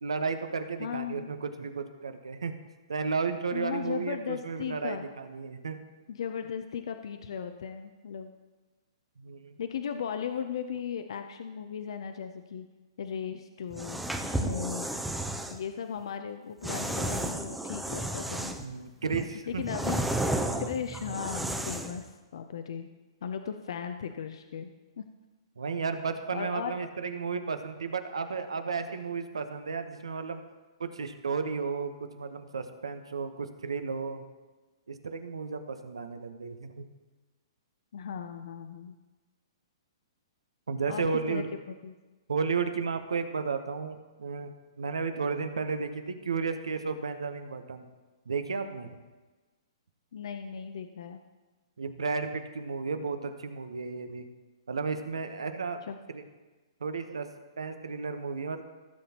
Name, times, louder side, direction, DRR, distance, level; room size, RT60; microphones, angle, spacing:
voice 1, 0.0-2.6 2.9-5.8 9.2-9.6 18.6-19.8 25.6-30.4 30.8-34.2 34.9-36.8 40.7-41.5 42.3-47.9 48.3-49.0 51.8-54.3 54.7-55.8 56.1-56.2 56.8-57.3 57.6-58.6, right 5 dB, 90° right, 8 dB, 0.9 m, -33 dB
voice 2, 0.8-1.3 3.5-5.1 6.1-8.3 9.6-12.7 13.0-15.0 15.5-18.6 19.5-20.0 20.6-22.0 22.3-22.9 23.2-24.7 25.0-25.1 26.3-26.7 37.9-39.0 40.9-41.9 50.1-51.2 55.9-56.0, left 7 dB, 70° left, 7 dB, 0.5 m, -37 dB
sound 1, 13.7-15.6 16.6-18.7 19.1-22.0, right 1 dB, 5° right, 0.6 m, -32 dB
15.5 x 7.4 x 2.9 m, 1.2 s
hypercardioid pair, 135°, 3 cm